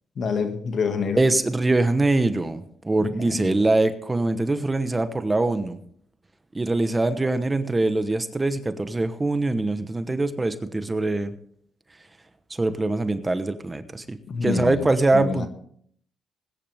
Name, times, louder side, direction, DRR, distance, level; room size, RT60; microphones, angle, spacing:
voice 1, 0.2-1.2 3.2-3.6 14.3-14.9 15.1-15.5, left 5 dB, 55° left, 6 dB, 2.0 m, -27 dB
voice 2, 1.2-5.8 6.5-11.3 12.5-15.5, right 2 dB, 20° right, 10 dB, 1.1 m, -23 dB
20.0 x 10.0 x 3.6 m, 0.64 s
cardioid pair, 90°, 0 cm